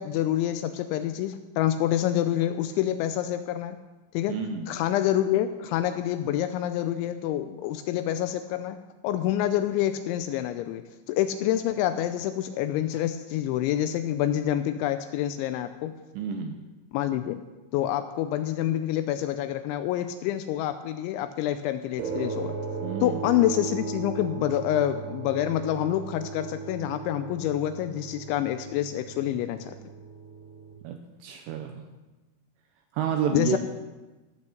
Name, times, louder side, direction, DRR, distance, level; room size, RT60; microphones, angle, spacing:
voice 1, 0.0-3.8 4.1-4.4 4.7-8.8 9.0-15.9 16.9-17.4 17.7-22.5 23.0-29.8 33.3-33.6, left 12 dB, 85° left, 10 dB, 2.7 m, -27 dB
voice 2, 4.3-4.8 16.2-16.6 22.8-23.2 30.8-31.8 32.9-33.6, right 8 dB, 80° right, 5 dB, 2.5 m, -30 dB
sound 1, 22.0-30.7, right 4 dB, 60° right, 3.7 m, -36 dB
14.5 x 6.4 x 7.0 m, 1.2 s
omnidirectional pair, 5.7 m